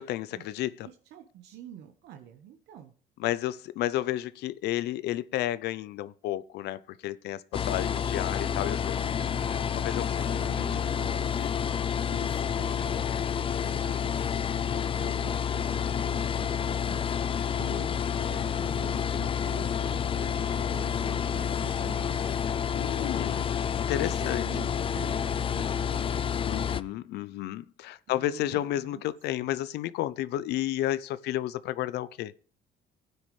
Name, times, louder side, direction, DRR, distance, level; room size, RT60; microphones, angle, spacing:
voice 1, 0.0-0.9 3.2-9.1 9.4-10.7 11.0-11.5 14.1-14.5 17.5-18.3 19.5-19.7 21.0-21.2 22.7-24.5 26.4-32.3, left 13 dB, 80° left, 0.6 m, -32 dB
voice 2, 0.8-2.9 10.3-11.3 12.1-22.3 23.9-26.2 28.1-29.0 29.4-29.5, right 9 dB, 75° right, 1.3 m, -47 dB
sound 1, 7.5-26.8, left 8 dB, 30° left, 0.5 m, -29 dB
sound 2, 8.3-14.2, left 2 dB, 5° left, 1.3 m, -48 dB
16.0 x 9.5 x 3.2 m
cardioid pair, 110°, 17 cm